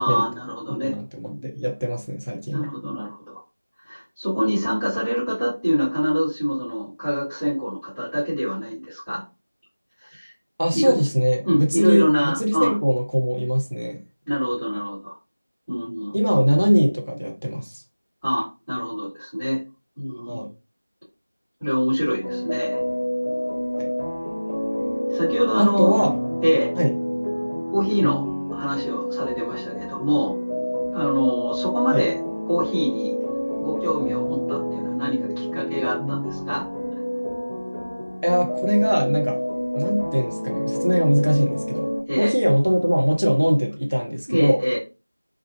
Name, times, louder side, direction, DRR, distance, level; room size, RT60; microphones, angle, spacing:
voice 1, 0.0-0.9 1.3-1.5 2.5-3.4 3.9-9.2 10.0-10.3 10.7-11.0 11.4-12.7 14.3-15.1 15.7-16.2 18.2-19.6 20.0-20.5 21.6-22.8 25.1-26.0 26.4-26.7 27.7-28.2 28.5-30.3 30.9-32.1 32.4-33.1 33.6-36.6 42.1-42.3 44.3-44.8, equal, ahead, 0.9 m, -24 dB
voice 2, 0.7-2.7 10.6-14.0 16.1-17.7 20.3-20.5 23.8-23.9 25.6-26.2 26.8-27.0 31.9-32.0 38.2-39.4 39.7-44.6, equal, 70° right, 0.8 m, -21 dB
sound 1, 22.1-42.0, equal, 40° left, 0.6 m, -27 dB
2.5 x 2.1 x 2.6 m
figure-of-eight pair, 175°, 0 cm